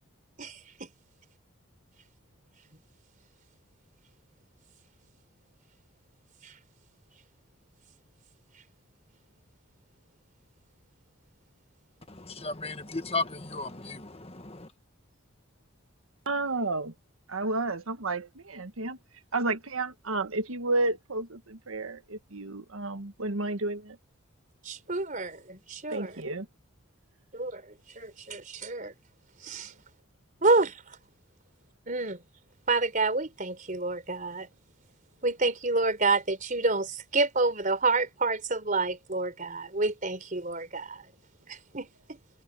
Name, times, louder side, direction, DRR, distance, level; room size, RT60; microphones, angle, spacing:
voice 1, 0.4-0.9 6.4-6.6 24.6-26.2 27.3-28.9 29.4-29.7 30.4-31.0 31.9-32.2 32.7-34.5 35.2-41.1 41.5-42.2, right 3 dB, 40° right, 4.1 m, -29 dB
voice 2, 12.1-14.7, left 3 dB, 30° left, 1.6 m, -35 dB
voice 3, 16.2-16.9 17.3-19.0 19.3-24.0 25.9-26.5, right 2 dB, 80° right, 1.4 m, -31 dB
head